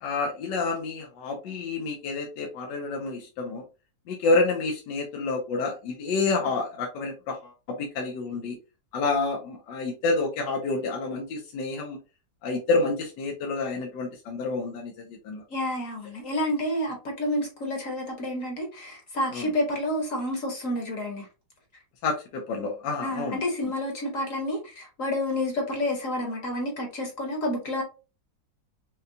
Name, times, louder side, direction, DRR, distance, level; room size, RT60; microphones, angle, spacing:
voice 1, 0.0-3.6 4.1-8.6 8.9-12.0 12.4-14.9 15.2-15.4 19.3-19.5 22.0-23.4, left 3 dB, 85° left, 1.4 m, -28 dB
voice 2, 15.5-21.3 23.0-27.8, left 1 dB, 50° left, 1.2 m, -29 dB
5.4 x 2.2 x 2.6 m
omnidirectional pair, 1.9 m